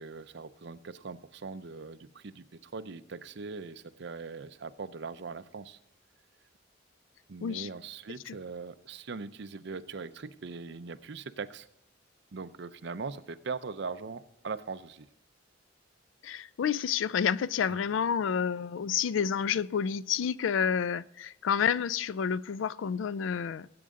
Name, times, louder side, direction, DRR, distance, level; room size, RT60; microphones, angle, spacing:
voice 1, 0.0-5.8 7.3-11.7 12.3-15.1 17.7-17.9, right 4 dB, 65° right, 0.6 m, -41 dB
voice 2, 16.2-23.7, left 7 dB, 85° left, 0.4 m, -29 dB
18.5 x 8.7 x 3.7 m
head